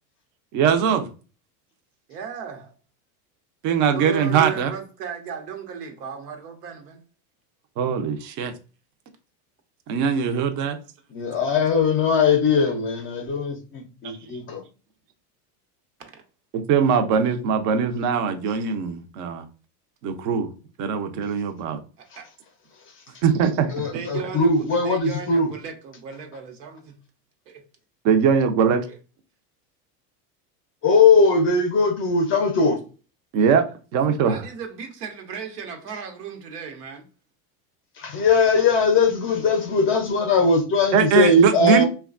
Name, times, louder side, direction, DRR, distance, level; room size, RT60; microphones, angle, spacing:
voice 1, 0.5-1.1 3.6-4.7 7.8-8.5 9.9-10.8 16.5-19.4 20.0-20.5 20.8-21.8 23.2-23.7 28.0-28.8 33.3-33.6 33.9-34.4 40.9-41.8, right 6 dB, 40° right, 0.5 m, -21 dB
voice 2, 2.1-2.7 3.9-7.0 8.2-8.3 16.0-16.2 22.0-22.3 23.9-27.0 27.5-27.6 28.7-29.0 34.2-37.0, right 7 dB, 85° right, 0.9 m, -36 dB
voice 3, 11.1-14.6 23.7-25.5 30.8-32.8 38.0-41.8, left 3 dB, 30° left, 0.5 m, -20 dB
3.2 x 2.2 x 2.4 m
supercardioid pair, 130°, 46 cm